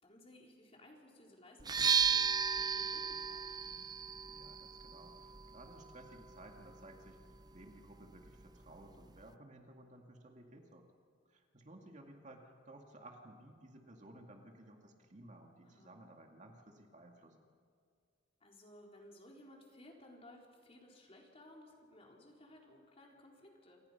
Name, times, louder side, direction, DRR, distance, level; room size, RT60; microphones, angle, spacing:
voice 1, 0.0-3.6 15.6-15.9 18.4-23.8, left 1 dB, 30° left, -1 dB, 4.2 m, -59 dB
sound 1, 1.6-9.3, right 6 dB, 20° right, 0.5 m, -37 dB
voice 2, 4.2-7.2 7.5-10.9 11.3-17.4, right 1 dB, 40° right, 2 dB, 2.2 m, -56 dB
28.0 x 26.0 x 5.8 m, 2.1 s
head